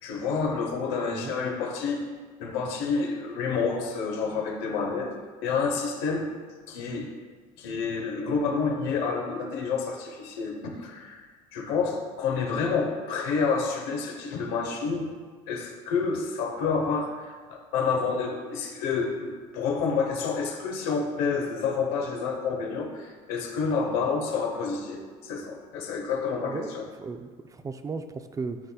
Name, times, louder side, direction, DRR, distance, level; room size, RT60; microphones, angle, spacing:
voice 1, 0.0-2.1 2.4-5.1 5.4-6.3 6.7-7.1 7.6-15.1 15.5-26.9, left 5 dB, 80° left, 1 dB, 0.9 m, -29 dB
voice 2, 26.4-28.6, right 4 dB, 20° right, 9 dB, 0.4 m, -36 dB
9.8 x 4.2 x 2.3 m, 1.5 s
supercardioid pair, 95°, 16 cm